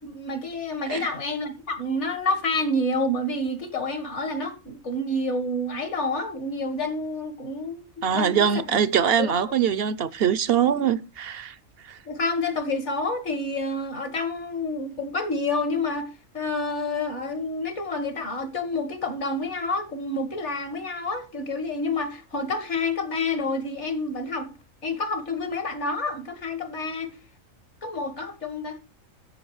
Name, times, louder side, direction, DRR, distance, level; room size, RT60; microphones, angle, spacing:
voice 1, 0.0-7.9 8.1-8.5 9.2-9.3 12.1-24.5 24.8-27.1 27.8-28.8, left 2 dB, 60° left, 2.1 m, -28 dB
voice 2, 8.0-11.6 11.8-12.0, right 8 dB, 55° right, 0.8 m, -23 dB
13.5 x 7.5 x 3.2 m
omnidirectional pair, 1.3 m